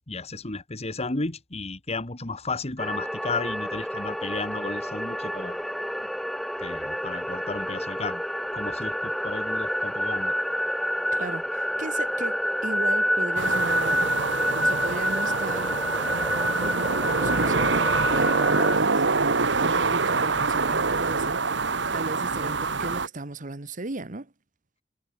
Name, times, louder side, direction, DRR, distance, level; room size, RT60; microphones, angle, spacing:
voice 1, 0.1-5.6 6.6-8.2 8.5-10.4, left 3 dB, 35° left, 1.8 m, -33 dB
sound 1, 2.8-18.8, equal, ahead, 1.2 m, -28 dB
voice 2, 11.1-14.1 14.6-15.8 17.0-19.0 19.6-24.3, right 2 dB, 45° right, 1.3 m, -36 dB
sound 2, 13.4-23.1, right 4 dB, 70° right, 1.6 m, -25 dB
head